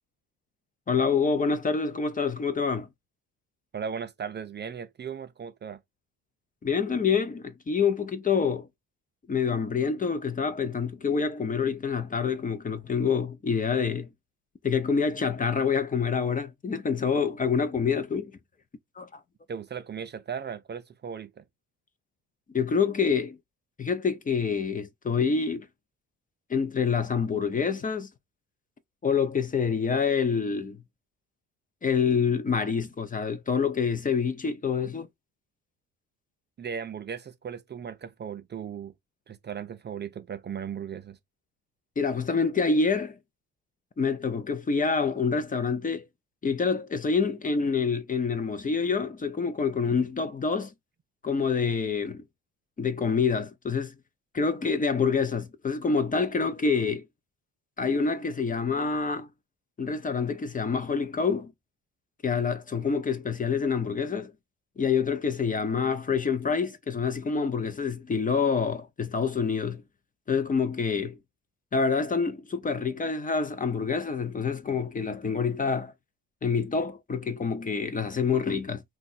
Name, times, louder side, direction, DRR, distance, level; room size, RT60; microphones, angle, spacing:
voice 1, 0.9-2.9 6.6-8.7 9.3-14.1 14.6-18.3 19.0-19.2 22.5-23.4 23.8-25.7 26.5-28.1 29.0-30.8 31.8-35.1 42.0-43.2 44.0-46.0 46.4-50.7 51.2-52.2 52.8-53.9 54.3-57.0 57.8-59.3 59.8-61.5 62.2-64.3 64.8-69.8 70.3-71.2 71.7-75.9 76.4-78.8, left 5 dB, 25° left, 0.6 m, -27 dB
voice 2, 3.7-5.8 19.5-21.4 36.6-38.9 39.3-41.2, right 7 dB, 30° right, 0.5 m, -37 dB
2.6 x 2.2 x 4.1 m
cardioid pair, 85°, 33 cm